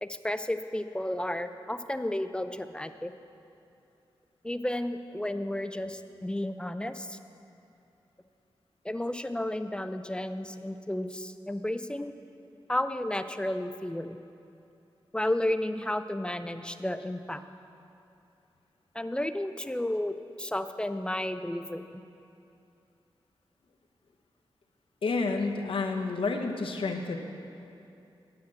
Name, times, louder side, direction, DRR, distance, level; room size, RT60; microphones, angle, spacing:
voice 1, 0.0-3.1 4.4-7.2 8.8-12.1 12.7-14.2 15.1-17.4 18.9-21.9, left 1 dB, 10° left, 10 dB, 0.4 m, -32 dB
voice 2, 25.0-27.2, left 3 dB, 70° left, 3 dB, 0.9 m, -29 dB
9.7 x 6.0 x 7.5 m, 2.7 s
wide cardioid pair, 85°, 9 cm